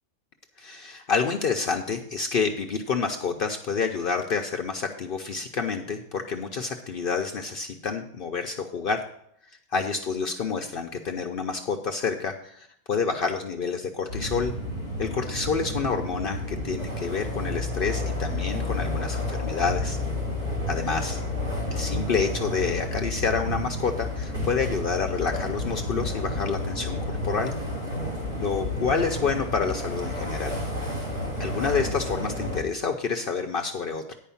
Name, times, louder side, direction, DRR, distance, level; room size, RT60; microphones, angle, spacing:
voice 1, 0.6-9.0 9.7-14.5 15.0-20.0 20.7-21.2 21.7-27.5 28.4-30.6 31.4-34.2, left 5 dB, 55° left, 3 dB, 0.8 m, -28 dB
sound 1, 14.1-32.6, left 1 dB, 50° right, 3.4 m, -31 dB
10.0 x 5.0 x 7.0 m, 0.70 s
omnidirectional pair, 1.2 m